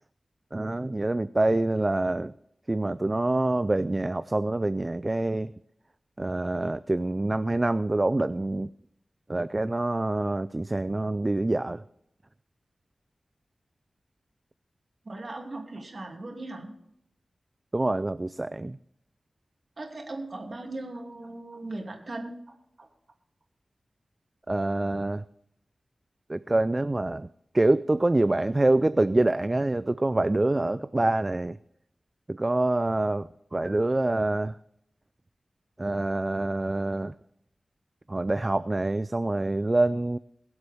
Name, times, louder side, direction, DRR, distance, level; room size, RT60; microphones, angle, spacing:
voice 1, 0.5-2.3 2.7-5.5 6.2-8.7 9.3-11.8 17.7-18.8 24.5-25.2 26.3-27.3 27.5-31.6 32.3-34.6 35.8-37.1 38.1-40.2, right 2 dB, 25° right, 14 dB, 0.3 m, -26 dB
voice 2, 15.0-16.7 19.8-22.9, right 2 dB, 45° right, 1 dB, 2.6 m, -38 dB
22.0 x 8.0 x 3.5 m, 0.76 s
wide cardioid pair, 110°, 0 cm